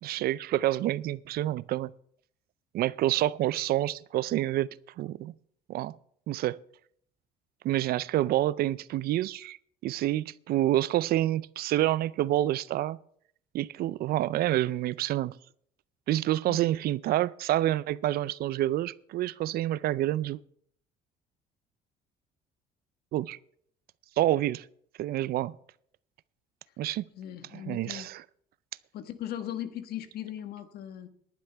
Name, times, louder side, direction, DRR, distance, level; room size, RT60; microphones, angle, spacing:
voice 1, 0.0-1.9 2.7-4.7 5.0-5.3 5.7-5.9 6.3-6.6 7.6-9.6 9.8-13.0 13.5-15.4 16.1-20.4 23.1-23.4 24.2-24.7 25.0-25.5 26.8-27.0 27.5-28.2, right 14 dB, 65° right, 0.5 m, -28 dB
voice 2, 27.1-28.1 28.9-31.1, left 11 dB, 70° left, 1.5 m, -38 dB
18.5 x 11.0 x 3.4 m
cardioid pair, 110°, 17 cm